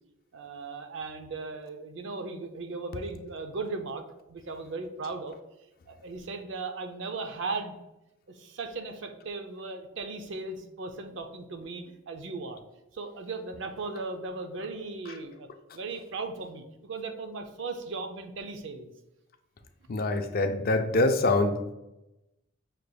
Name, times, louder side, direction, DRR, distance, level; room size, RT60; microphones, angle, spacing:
voice 1, 0.3-4.0 4.3-5.3 5.9-7.7 8.3-12.6 12.9-15.5 15.7-18.9, right 3 dB, 65° right, 6 dB, 0.5 m, -37 dB
voice 2, 19.9-21.7, left 2 dB, 50° left, 7 dB, 0.4 m, -25 dB
5.8 x 3.3 x 2.2 m, 0.94 s
head